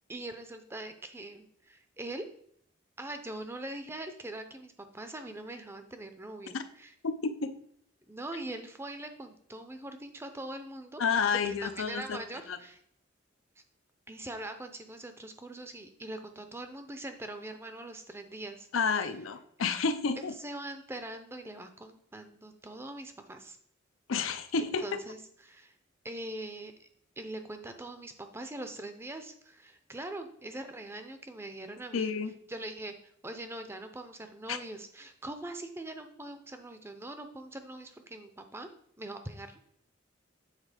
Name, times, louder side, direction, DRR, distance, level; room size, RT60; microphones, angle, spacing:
voice 1, 0.1-2.3 3.0-6.9 8.1-11.0 11.4-12.8 14.1-18.7 20.2-23.6 24.8-25.2 25.4-25.7 26.0-26.9 27.2-32.1 32.5-32.9 33.2-38.7 39.0-39.7, right 1 dB, 10° right, 7 dB, 0.5 m, -42 dB
voice 2, 7.0-7.5 11.0-12.2 12.5-12.6 18.7-20.3 24.1-25.0 31.9-32.3 34.5-34.6, left 5 dB, 85° left, 9 dB, 0.6 m, -30 dB
7.4 x 3.6 x 4.9 m, 0.65 s
head